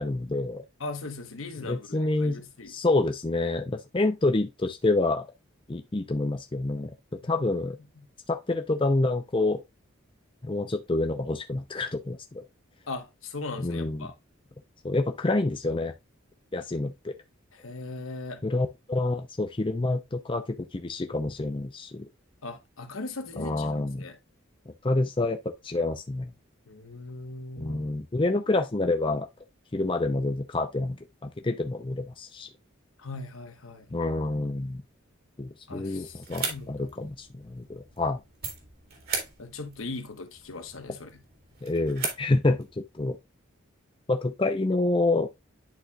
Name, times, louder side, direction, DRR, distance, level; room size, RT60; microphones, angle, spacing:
voice 1, 0.0-0.6 1.6-2.4 2.7-5.3 5.7-7.0 7.2-7.8 8.3-9.6 10.4-12.4 13.6-14.1 14.8-15.9 16.5-17.1 18.4-22.1 23.4-24.1 24.8-26.3 27.6-29.3 29.7-31.0 31.2-32.5 33.9-34.8 35.4-38.2 41.6-43.2 44.1-45.3, left 2 dB, 25° left, 0.5 m, -27 dB
voice 2, 0.8-2.7 7.2-7.5 8.0-8.1 12.9-14.1 17.5-18.4 22.4-23.7 24.0-24.2 26.7-27.9 33.0-33.9 35.7-36.9 39.4-41.2, left 3 dB, 80° left, 1.1 m, -39 dB
sound 1, 36.0-42.7, right 5 dB, 50° right, 2.2 m, -39 dB
10.5 x 4.3 x 2.3 m
head